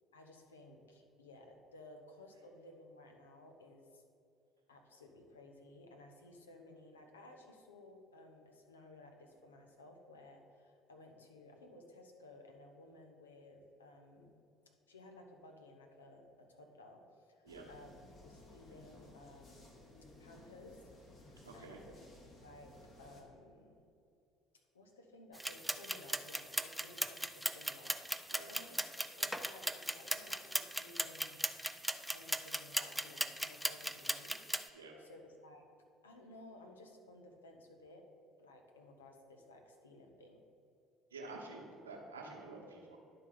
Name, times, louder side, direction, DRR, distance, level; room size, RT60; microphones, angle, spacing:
voice 1, 0.1-4.0 4.7-14.4 14.9-19.9 20.2-20.8 21.5-22.0 22.4-23.8 24.7-31.4 32.1-34.4 35.0-35.6 36.0-38.1 38.4-40.4, left 2 dB, 85° left, 3 dB, 0.8 m, -57 dB
sound 1, 17.5-23.2, left 2 dB, 45° left, 1.8 m, -58 dB
voice 2, 21.4-21.8 28.3-28.5 34.7-34.9 41.1-43.0, right 3 dB, 85° right, -2 dB, 1.1 m, -49 dB
sound 2, 25.3-34.7, equal, ahead, 0.4 m, -38 dB
11.0 x 3.9 x 5.0 m, 2.6 s
figure-of-eight pair, 60°, 0 cm